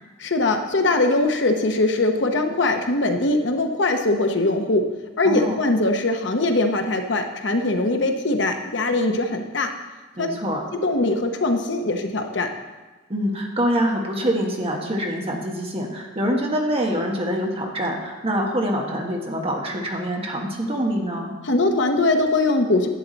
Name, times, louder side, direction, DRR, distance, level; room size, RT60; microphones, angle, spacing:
voice 1, 0.2-4.9 5.2-9.7 10.2-10.3 10.7-12.5 21.4-22.9, left 2 dB, 65° left, 5 dB, 0.9 m, -21 dB
voice 2, 5.2-5.6 10.2-10.6 13.1-21.3, equal, 30° right, 0 dB, 1.4 m, -25 dB
11.5 x 8.3 x 4.0 m, 1.3 s
head